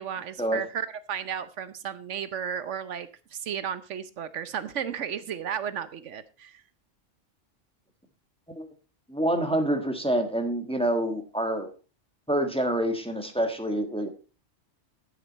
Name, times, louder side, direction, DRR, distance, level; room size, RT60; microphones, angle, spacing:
voice 1, 0.0-6.6, right 8 dB, 75° right, 14 dB, 1.1 m, -34 dB
voice 2, 9.1-11.7 12.3-14.1, right 1 dB, 5° left, 5 dB, 1.4 m, -27 dB
11.0 x 9.1 x 4.1 m, 0.33 s
omnidirectional pair, 1.3 m